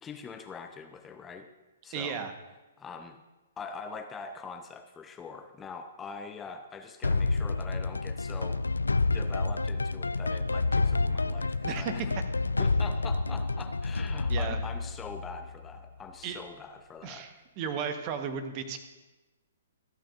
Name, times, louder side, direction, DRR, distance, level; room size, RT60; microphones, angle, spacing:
voice 1, 0.0-1.5 1.8-2.2 2.8-3.2 3.6-8.7 9.1-12.1 12.6-17.3, left 5 dB, 15° left, 7 dB, 0.6 m, -43 dB
voice 2, 1.9-2.3 11.6-12.1 14.3-14.6 16.2-16.4 17.0-18.8, right 7 dB, 35° right, 8 dB, 1.2 m, -34 dB
sound 1, 7.0-15.9, left 3 dB, 80° left, 0.3 m, -29 dB
26.5 x 9.0 x 2.6 m, 1.1 s
figure-of-eight pair, 120°, 0 cm